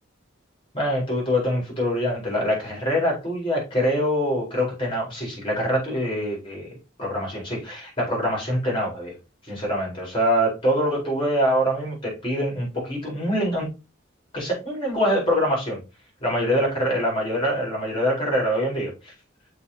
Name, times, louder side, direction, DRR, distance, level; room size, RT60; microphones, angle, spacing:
voice 1, 0.7-9.1 9.5-13.7 14.3-15.8 16.2-19.1, equal, 25° left, 4.5 m, -24 dB
6.8 x 4.7 x 4.0 m
head